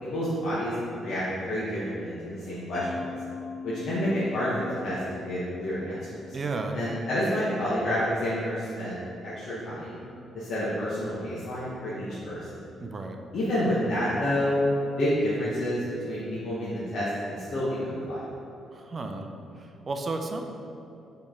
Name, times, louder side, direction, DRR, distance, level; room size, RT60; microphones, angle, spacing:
voice 1, 0.0-3.1 3.6-4.5 4.8-6.1 6.7-10.0 10.3-12.6 13.3-14.6 15.0-18.3, equal, 60° left, -9 dB, 0.9 m, -29 dB
Mallet percussion, 2.7-7.5, left 5 dB, 20° left, 0.8 m, -42 dB
voice 2, 6.3-6.8 12.8-13.2 18.7-19.3 19.6-20.4, right 3 dB, 35° right, 4 dB, 0.4 m, -33 dB
4.3 x 3.2 x 3.5 m, 2.8 s
cardioid pair, 90°, 0 cm